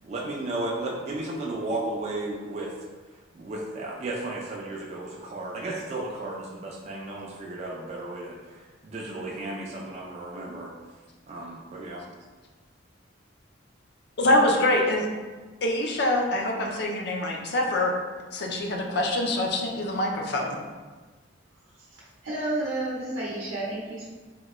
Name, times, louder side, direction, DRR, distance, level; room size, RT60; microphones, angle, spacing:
voice 1, 0.0-2.7 3.4-10.7 11.3-12.1, right 2 dB, 35° right, -3 dB, 0.3 m, -34 dB
voice 2, 14.2-15.1 15.6-17.9 18.3-20.6, left 1 dB, 55° left, 1 dB, 0.5 m, -25 dB
voice 3, 22.2-24.1, right 2 dB, 90° right, -6 dB, 0.6 m, -30 dB
3.6 x 2.1 x 3.0 m, 1.4 s
head